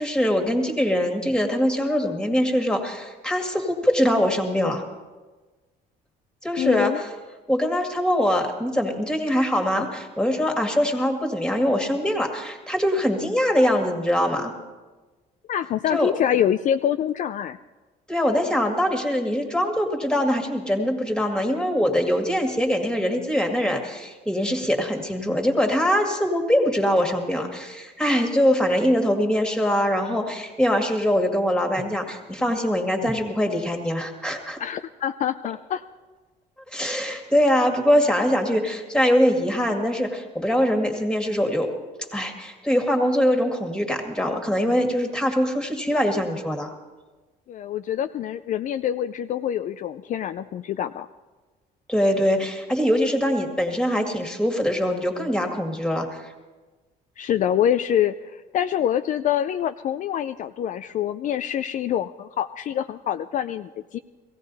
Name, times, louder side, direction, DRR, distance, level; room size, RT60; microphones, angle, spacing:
voice 1, 0.0-4.8 6.4-7.1 7.5-14.5 15.9-16.1 18.1-34.6 36.7-41.7 42.1-46.7 51.9-56.3, equal, 5° left, 3 dB, 2.0 m, -23 dB
voice 2, 6.6-7.0 15.5-17.6 34.6-35.8 47.5-51.1 57.2-64.0, left 10 dB, 50° left, 9 dB, 0.4 m, -25 dB
16.5 x 16.5 x 4.1 m, 1.3 s
cardioid pair, 110°, 17 cm